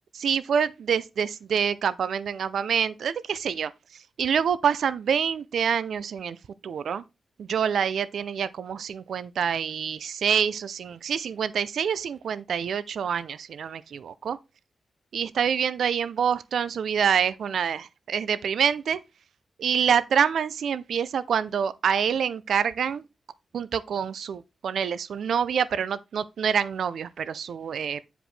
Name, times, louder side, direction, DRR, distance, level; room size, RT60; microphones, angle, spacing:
voice 1, 0.1-3.7 4.2-6.4 6.6-7.0 7.4-14.4 15.1-19.0 19.6-23.0 23.5-28.1, right 7 dB, 75° right, 0.4 m, -26 dB
9.7 x 5.0 x 3.2 m
wide cardioid pair, 160°, 0 cm